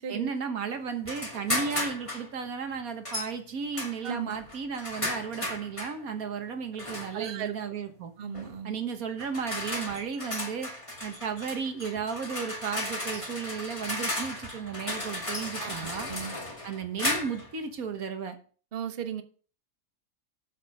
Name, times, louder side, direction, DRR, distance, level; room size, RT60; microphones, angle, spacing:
voice 1, 0.1-8.1 8.6-10.7 11.0-16.1 16.6-18.4, right 6 dB, 70° right, 7 dB, 1.8 m, -34 dB
sound 1, 1.0-2.3 3.0-3.3 3.7-6.0 6.8-7.3 8.3-8.6 9.2-17.5, left 1 dB, 20° left, 2.2 m, -35 dB
voice 2, 4.0-4.4 7.1-7.5 8.2-8.8 15.6-16.3 18.7-19.2, right 8 dB, 45° right, 9 dB, 0.9 m, -36 dB
7.9 x 7.4 x 5.4 m, 0.41 s
omnidirectional pair, 1.6 m